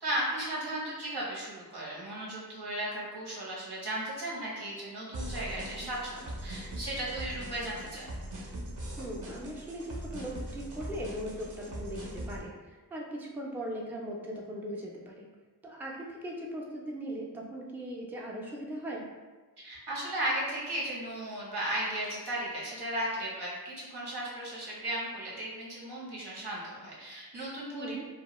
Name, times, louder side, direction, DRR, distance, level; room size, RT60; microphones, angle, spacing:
voice 1, 0.0-8.1 19.6-28.0, right 1 dB, 85° right, -6 dB, 0.9 m, -35 dB
sound 1, 5.1-12.4, right 1 dB, 55° right, 0.5 m, -41 dB
voice 2, 9.0-15.3 15.6-19.0 27.7-28.1, right 1 dB, 5° right, -2 dB, 0.4 m, -39 dB
2.3 x 2.1 x 2.9 m, 1.3 s
wide cardioid pair, 45°, 39 cm